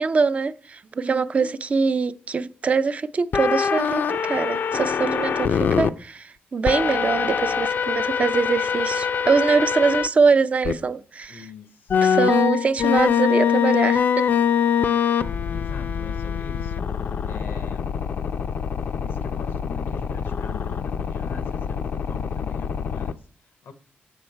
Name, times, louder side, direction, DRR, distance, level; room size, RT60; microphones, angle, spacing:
voice 1, 0.0-11.4 12.0-14.3, right 5 dB, 35° right, 0.4 m, -23 dB
sound 1, 3.3-5.9 6.7-10.1 10.6-10.7 11.9-23.1, left 7 dB, 55° left, 0.4 m, -24 dB
voice 2, 11.3-12.2 15.5-16.9 17.3-18.0 18.9-23.7, left 5 dB, 85° left, 0.7 m, -43 dB
7.0 x 6.7 x 4.4 m
cardioid pair, 105°, 4 cm